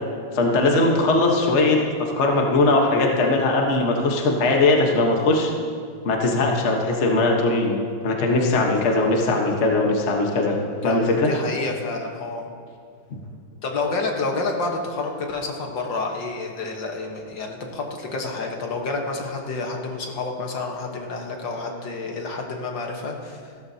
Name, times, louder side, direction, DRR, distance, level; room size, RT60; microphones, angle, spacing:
voice 1, 0.3-1.8 2.2-5.5 6.0-7.8 8.0-10.6 10.8-11.3, left 2 dB, 40° left, 1 dB, 1.3 m, -20 dB
voice 2, 10.7-12.5 13.6-23.4, left 3 dB, 65° left, 1 dB, 1.9 m, -29 dB
15.5 x 13.0 x 2.8 m, 2.2 s
omnidirectional pair, 2.2 m